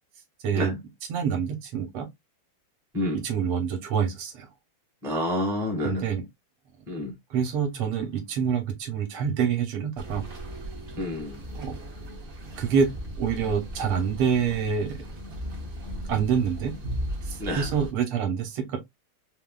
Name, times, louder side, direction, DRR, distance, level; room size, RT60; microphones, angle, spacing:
voice 1, 0.4-0.8 1.1-2.1 3.2-4.5 5.8-6.2 7.3-10.2 11.6-11.8 12.6-15.0 16.1-16.7 17.2-18.8, right 7 dB, 85° right, 1.9 m, -26 dB
voice 2, 5.0-6.1 6.9-7.1 11.0-11.4 17.4-17.7, left 1 dB, 5° right, 0.5 m, -28 dB
sound 1, 10.0-17.9, equal, 65° right, 0.5 m, -37 dB
4.2 x 2.0 x 2.2 m
omnidirectional pair, 2.4 m